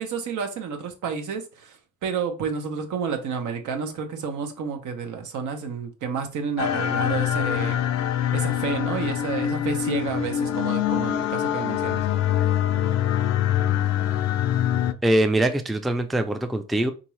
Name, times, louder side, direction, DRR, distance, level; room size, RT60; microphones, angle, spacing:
voice 1, 0.0-7.8 8.3-12.0, right 6 dB, 75° right, 0.9 m, -30 dB
sound 1, 6.6-14.9, left 10 dB, 65° left, 0.5 m, -24 dB
voice 2, 15.0-16.9, right 1 dB, ahead, 0.3 m, -22 dB
3.6 x 2.7 x 3.1 m
cardioid pair, 90°, 30 cm